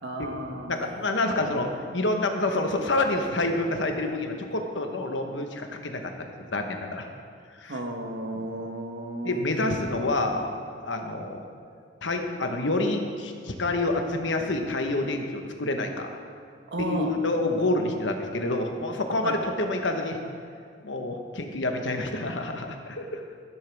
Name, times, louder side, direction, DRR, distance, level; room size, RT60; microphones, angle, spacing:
voice 1, 0.0-0.9 7.7-9.5 16.7-17.1 19.2-19.4, right 1 dB, 75° right, 3 dB, 1.3 m, -33 dB
voice 2, 0.7-6.1 6.5-7.1 7.5-7.8 8.3-8.4 9.2-10.5 10.8-11.4 12.0-16.2 16.8-20.2 20.8-23.2, left 2 dB, 85° left, 4 dB, 1.2 m, -28 dB
16.0 x 10.0 x 3.5 m, 2.3 s
head